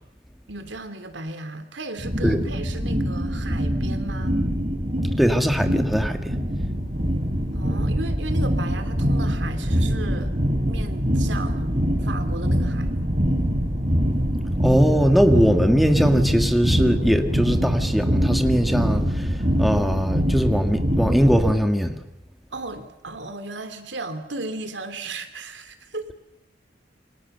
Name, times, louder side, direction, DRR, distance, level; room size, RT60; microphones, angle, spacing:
voice 1, 0.5-4.4 7.5-10.3 10.7-12.9 22.5-26.1, right 2 dB, 80° right, 9 dB, 3.0 m, -35 dB
sound 1, 2.0-21.5, equal, 35° right, 5.3 m, -24 dB
voice 2, 5.2-6.3 14.6-22.0, equal, ahead, 6 dB, 1.9 m, -20 dB
28.0 x 24.5 x 6.8 m, 0.87 s
head